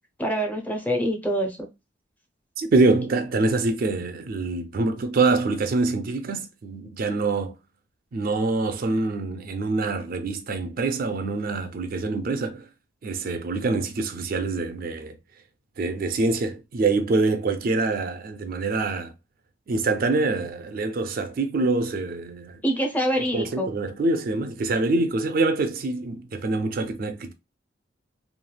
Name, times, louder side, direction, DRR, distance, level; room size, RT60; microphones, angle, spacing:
voice 1, 0.2-1.7 22.6-23.7, equal, 10° left, 0.6 m, -25 dB
voice 2, 2.6-7.5 8.1-12.6 13.0-15.2 15.8-19.1 19.7-22.6 23.2-27.3, right 3 dB, 50° right, 0.4 m, -25 dB
3.1 x 2.3 x 2.2 m
head